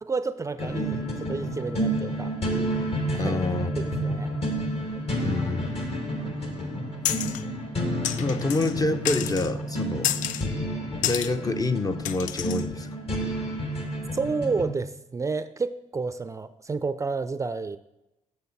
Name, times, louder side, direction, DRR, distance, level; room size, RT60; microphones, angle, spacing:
voice 1, 0.0-2.3 3.1-3.4 4.0-4.3 6.5-6.8 14.1-17.8, right 4 dB, 25° right, 12 dB, 0.4 m, -30 dB
sound 1, 0.6-14.7, right 1 dB, 50° left, 2.0 m, -30 dB
voice 2, 3.2-3.7 4.1-4.2 5.2-6.1 8.2-10.1 11.0-12.9, left 3 dB, 30° left, 9 dB, 0.7 m, -27 dB
sound 2, 7.0-7.4 8.0-8.7 9.0-9.5 10.0-10.5 11.0-11.3 12.0-12.6, left 11 dB, 75° left, 0.4 m, -29 dB
8.2 x 6.9 x 4.0 m, 0.92 s
supercardioid pair, 70°, 13 cm